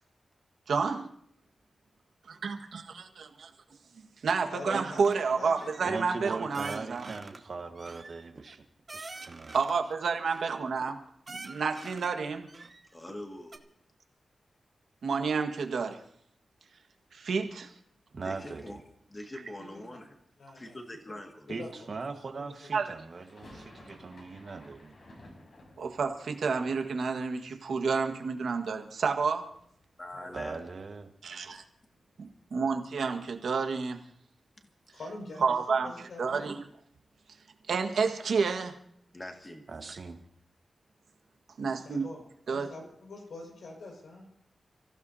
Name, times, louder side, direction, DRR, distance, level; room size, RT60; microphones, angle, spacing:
voice 1, 0.7-1.1 2.4-2.5 3.2-3.5 4.0-7.1 9.5-11.0 11.3-12.5 15.0-16.0 17.1-17.7 22.7-22.9 25.8-29.5 31.2-31.6 32.2-34.0 35.4-36.6 37.7-38.8 41.6-42.1 42.5-42.7, right 5 dB, 85° right, 5 dB, 1.6 m, -30 dB
voice 2, 4.5-5.8 19.7-19.8 20.4-20.8 21.5-21.9 22.4-22.8 30.1-30.4 34.9-36.6 41.6-44.3, left 2 dB, 80° left, 1 dB, 5.5 m, -45 dB
sound 1, 4.9-5.2 5.5-5.9 6.5-7.4 7.7-9.8 10.2-10.9 11.3-12.1 12.5-13.2 13.5-13.6, right 3 dB, 30° right, 1.0 m, -46 dB
voice 3, 5.8-8.6 8.9-9.5 18.1-18.8 21.5-24.9 30.3-31.1 39.7-40.2, right 4 dB, 50° right, 5 dB, 1.5 m, -40 dB
voice 4, 12.9-13.6 18.2-18.8 19.1-20.2 20.5-21.8 30.0-30.6 31.5-31.6 39.1-39.6, left 1 dB, 20° left, 3 dB, 1.9 m, -43 dB
sound 2, 23.1-29.1 29.3-30.2 30.5-30.6 30.8-33.0, left 1 dB, 55° left, 5.5 m, -55 dB
30.0 x 15.5 x 2.8 m, 0.66 s
wide cardioid pair, 170°, 0 cm